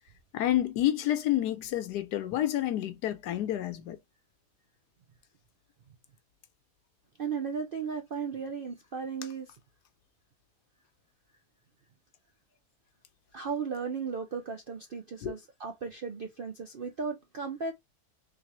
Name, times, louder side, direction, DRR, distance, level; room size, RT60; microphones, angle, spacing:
voice 1, 0.3-4.0 15.2-15.3, left 13 dB, 90° left, 1.3 m, -29 dB
voice 2, 7.2-9.5 13.3-17.7, right 5 dB, 70° right, 0.5 m, -35 dB
3.4 x 3.3 x 2.9 m
omnidirectional pair, 1.7 m